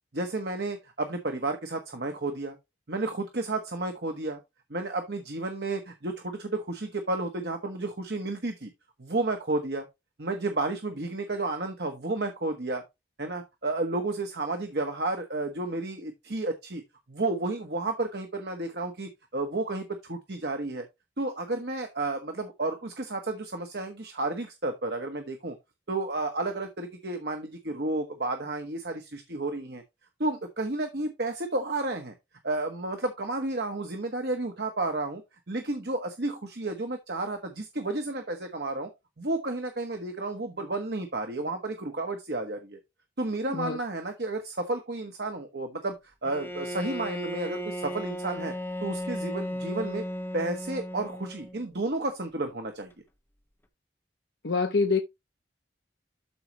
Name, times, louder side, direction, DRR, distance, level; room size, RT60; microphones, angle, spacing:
voice 1, 0.1-2.6 2.9-4.4 4.7-8.7 9.0-9.9 10.2-12.8 13.2-16.8 17.1-20.9 21.2-25.5 25.9-29.8 30.2-32.1 32.4-35.2 35.5-38.9 39.2-42.8 43.2-46.0 46.2-48.5 48.8-50.0 50.3-52.9, right 2 dB, 60° right, 1.3 m, -32 dB
Bowed string instrument, 46.2-51.7, equal, 15° left, 1.3 m, -35 dB
voice 2, 54.4-55.0, left 4 dB, 65° left, 0.8 m, -25 dB
12.5 x 4.8 x 3.0 m
head